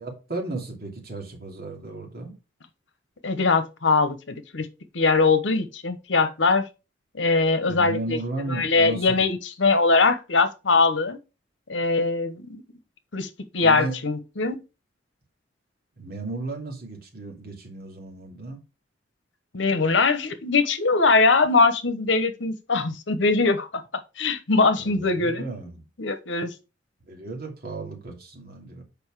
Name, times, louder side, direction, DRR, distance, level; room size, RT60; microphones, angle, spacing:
voice 1, 0.0-2.3 7.7-9.3 13.6-13.9 16.0-18.6 24.8-25.8 27.0-28.8, right 2 dB, 55° right, 2.7 m, -34 dB
voice 2, 3.2-4.7 4.9-6.6 7.1-8.2 8.5-11.2 11.7-12.6 13.1-14.6 19.5-25.4 26.0-26.5, left 3 dB, 70° left, 1.0 m, -22 dB
7.0 x 5.2 x 4.8 m
head